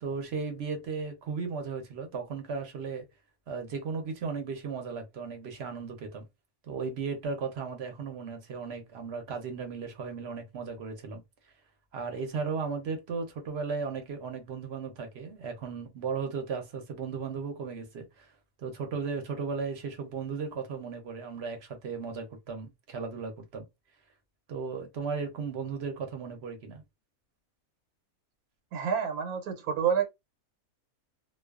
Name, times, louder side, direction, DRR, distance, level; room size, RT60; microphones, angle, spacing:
voice 1, 0.0-3.0 3.5-6.2 6.7-11.2 11.9-18.3 18.6-23.6 24.5-26.8, right 5 dB, 55° right, 0.8 m, -36 dB
voice 2, 28.7-30.0, right 7 dB, 90° right, 1.1 m, -28 dB
2.3 x 2.3 x 2.3 m
omnidirectional pair, 1.5 m